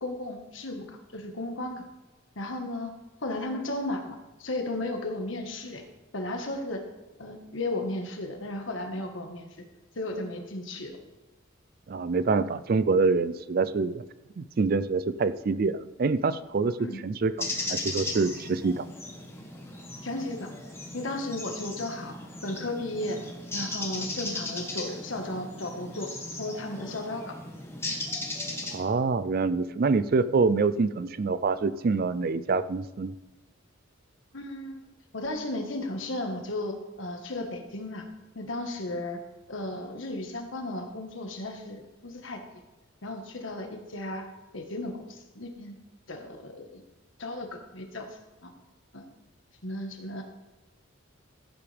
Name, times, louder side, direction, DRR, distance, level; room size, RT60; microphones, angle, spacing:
voice 1, 0.0-1.8 2.3-2.9 3.2-5.8 6.1-6.9 7.2-9.6 9.9-11.0 16.8-17.0 20.0-20.5 20.9-22.1 22.4-23.2 23.5-27.3 34.3-34.8 35.1-38.1 38.3-39.2 39.5-42.4 43.0-44.2 44.5-45.7 46.1-46.8 47.2-48.1 48.4-48.5 48.9-49.0 49.6-50.2, left 2 dB, 65° left, 4 dB, 1.5 m, -34 dB
voice 2, 11.9-14.0 14.4-16.8 17.0-18.9 28.7-33.1, right 4 dB, 45° right, 14 dB, 0.4 m, -26 dB
sound 1, 17.4-28.8, left 2 dB, 10° left, 1.3 m, -37 dB
15.0 x 8.5 x 3.4 m, 1.1 s
head